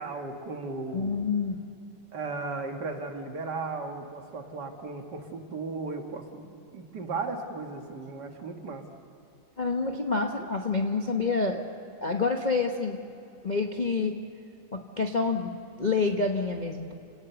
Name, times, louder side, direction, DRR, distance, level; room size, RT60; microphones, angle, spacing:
voice 1, 0.0-1.2 2.1-8.8, right 3 dB, 55° right, 4 dB, 2.2 m, -36 dB
voice 2, 0.9-1.6 9.6-11.6 12.0-13.0 13.4-14.2 14.7-15.5 15.8-16.9, left 4 dB, 30° left, 2 dB, 0.9 m, -27 dB
30.0 x 18.0 x 6.9 m, 2.7 s
omnidirectional pair, 2.2 m